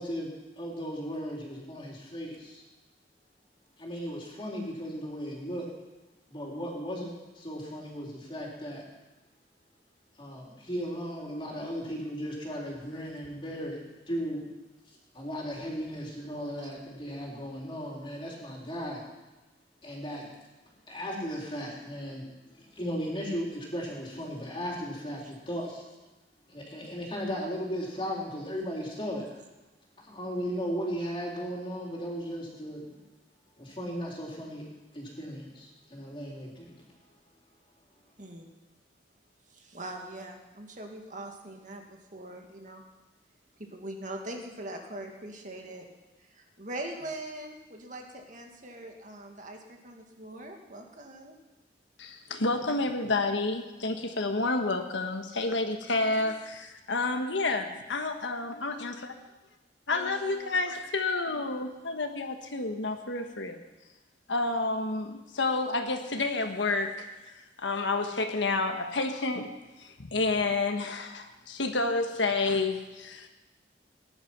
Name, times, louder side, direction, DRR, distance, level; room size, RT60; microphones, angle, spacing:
voice 1, 0.0-2.6 3.8-5.7 6.3-8.8 10.2-14.4 15.1-19.0 19.8-20.3 20.9-22.3 22.5-25.8 26.5-29.3 30.0-33.0 33.6-36.7, equal, 30° left, -2 dB, 3.6 m, -36 dB
voice 2, 38.2-38.5 39.5-41.8 42.1-42.8 43.6-45.9 46.2-51.4 55.9-56.4 59.9-60.6, right 1 dB, 45° right, 2 dB, 2.0 m, -42 dB
voice 3, 52.0-58.9 59.9-63.6 64.3-67.0 67.6-69.5 69.8-73.3, left 3 dB, 85° left, 5 dB, 1.4 m, -29 dB
18.5 x 10.5 x 6.0 m, 1.1 s
head